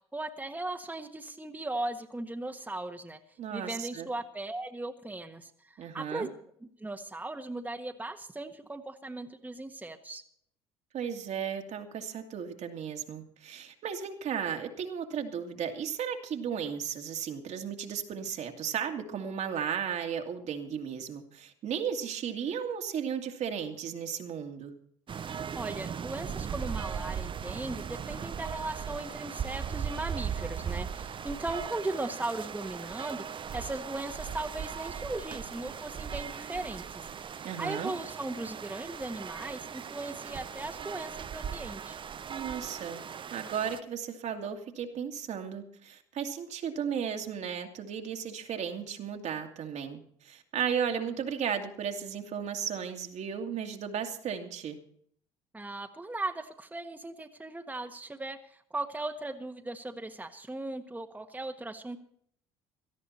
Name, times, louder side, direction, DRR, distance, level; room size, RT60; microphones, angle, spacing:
voice 1, 0.0-3.2 3.5-6.3 6.8-10.2 25.5-37.1 37.4-42.0 55.5-62.0, right 2 dB, 10° right, 5 dB, 1.5 m, -38 dB
voice 2, 3.4-4.1 5.8-6.3 10.9-24.7 37.4-37.9 42.3-43.0 43.3-54.8, right 8 dB, 55° right, 4 dB, 2.2 m, -35 dB
sound 1, 25.1-43.8, right 7 dB, 35° right, 0.7 m, -38 dB
17.5 x 13.0 x 4.3 m, 0.64 s
hypercardioid pair, 65°, 14 cm